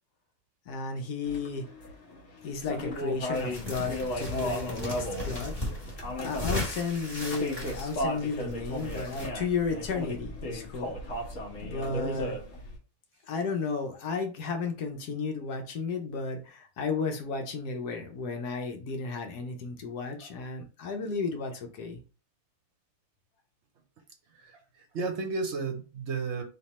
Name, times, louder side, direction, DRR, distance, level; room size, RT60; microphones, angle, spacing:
voice 1, 0.7-1.7 2.4-5.6 6.2-11.0 11.6-12.4 13.3-22.0, left 4 dB, 80° left, 5 dB, 1.3 m, -33 dB
sound 1, 1.3-12.8, left 1 dB, 55° left, 1.4 m, -36 dB
sound 2, 3.3-9.3, left 2 dB, 25° left, 1.3 m, -37 dB
voice 2, 24.3-26.4, right 4 dB, 60° right, 5 dB, 0.8 m, -34 dB
3.3 x 2.8 x 4.1 m, 0.36 s
omnidirectional pair, 1.7 m